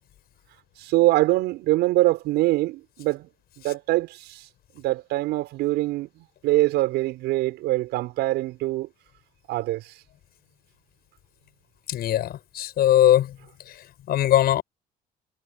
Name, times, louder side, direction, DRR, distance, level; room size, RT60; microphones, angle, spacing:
voice 1, 0.8-3.3 3.6-4.5 4.7-8.9 9.5-9.9, right 17 dB, 90° right, 6.0 m, -24 dB
voice 2, 11.9-13.4 13.7-14.6, left 12 dB, 65° left, 7.1 m, -21 dB
cardioid pair, 110°, 17 cm